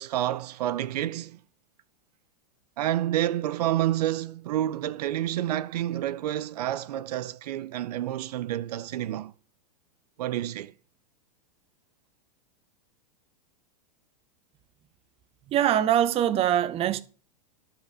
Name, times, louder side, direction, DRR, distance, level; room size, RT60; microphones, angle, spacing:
voice 1, 0.0-1.4 2.8-9.3 10.2-10.7, right 13 dB, 75° right, 0.6 m, -29 dB
voice 2, 15.5-17.0, right 11 dB, 30° right, 0.8 m, -23 dB
11.0 x 5.7 x 6.6 m
hypercardioid pair, 130°, 20 cm